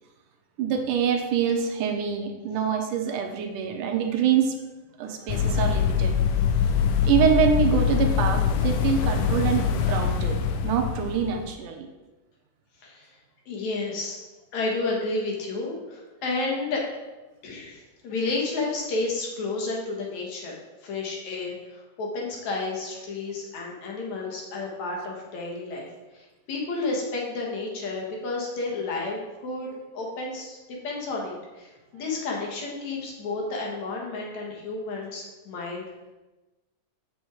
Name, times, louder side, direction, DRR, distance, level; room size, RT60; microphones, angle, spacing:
voice 1, 0.6-4.5 5.0-6.1 7.0-10.4 10.6-11.9, right 8 dB, 85° right, 4 dB, 2.4 m, -25 dB
sound 1, 5.3-11.5, left 7 dB, 80° left, 2.2 m, -24 dB
voice 2, 12.8-13.2 13.5-14.2 14.5-16.9 17.4-25.9 26.1-30.6 30.8-35.9, left 3 dB, 65° left, -2 dB, 2.7 m, -31 dB
7.8 x 6.4 x 4.8 m, 1.1 s
omnidirectional pair, 3.6 m